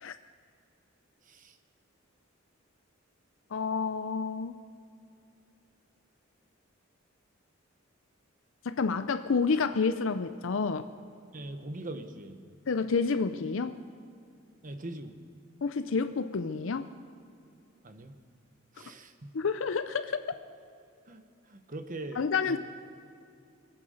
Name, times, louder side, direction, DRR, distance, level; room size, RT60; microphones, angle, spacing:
voice 1, 1.2-1.6 11.3-12.4 14.6-15.3 17.8-18.2 18.7-19.3 21.1-22.6, right 2 dB, 40° right, 8 dB, 1.0 m, -42 dB
voice 2, 3.5-4.6 8.6-10.9 12.7-13.8 15.6-16.9 19.3-20.2 22.2-22.6, left 5 dB, 70° left, 10 dB, 0.5 m, -29 dB
23.5 x 8.8 x 6.5 m, 2.4 s
head